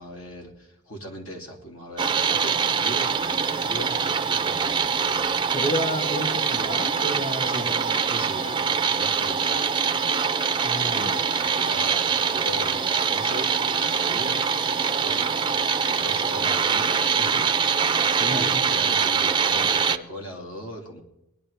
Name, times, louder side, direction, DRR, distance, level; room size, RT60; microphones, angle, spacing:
voice 1, 0.0-3.1 3.6-4.0 4.2-4.8 7.4-7.7 8.1-9.7 10.8-17.8 18.3-21.0, equal, 80° left, 1 dB, 2.8 m, -39 dB
sound 1, 2.0-20.0, right 6 dB, 20° right, 0.4 m, -24 dB
voice 2, 5.5-8.2 8.5-8.7 10.6-11.2 18.2-18.6, equal, 40° left, 1 dB, 3.3 m, -31 dB
20.0 x 11.0 x 3.4 m, 0.88 s
head